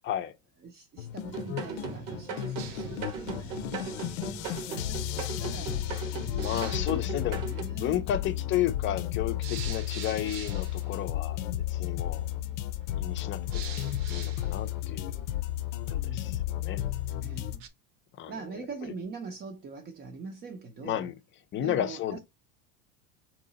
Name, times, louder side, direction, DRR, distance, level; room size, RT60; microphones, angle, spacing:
voice 1, 0.6-3.9 4.6-9.0 16.0-16.5 17.2-17.7 18.3-21.1 21.6-22.2, right 4 dB, 25° right, 0.6 m, -43 dB
sound 1, 1.0-17.6, left 13 dB, 80° left, 0.6 m, -33 dB
sound 2, 1.3-7.6, right 5 dB, 80° right, 1.2 m, -38 dB
sound 3, 2.6-17.7, right 6 dB, 55° right, 0.9 m, -48 dB
voice 2, 6.3-7.4 7.7-12.3 13.0-15.1 15.9-16.8 18.2-18.3 20.8-21.1 21.5-22.2, left 11 dB, 30° left, 0.5 m, -33 dB
3.7 x 2.9 x 4.0 m
supercardioid pair, 130°, 37 cm